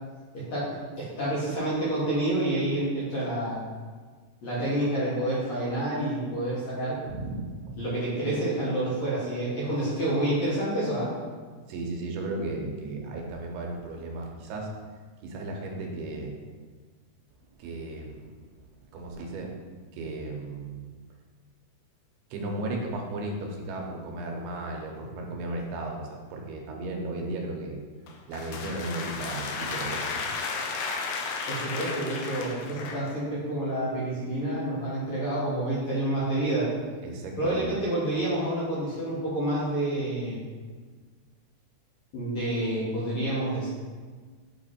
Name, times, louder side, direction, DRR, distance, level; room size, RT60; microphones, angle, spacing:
voice 1, 0.3-3.6 4.4-7.0 7.8-11.1 31.5-36.7 37.4-40.4 42.1-43.7, right 1 dB, 55° left, -9 dB, 2.1 m, -28 dB
voice 2, 7.1-7.8 11.7-14.7 15.2-16.4 17.6-18.3 18.9-19.6 19.9-20.9 22.3-27.8 28.3-30.3 37.0-37.7, right 2 dB, 80° right, 1 dB, 2.7 m, -35 dB
sound 1, 28.1-33.2, left 4 dB, 80° left, 2.3 m, -33 dB
8.1 x 3.2 x 4.2 m, 1.5 s
omnidirectional pair, 4.6 m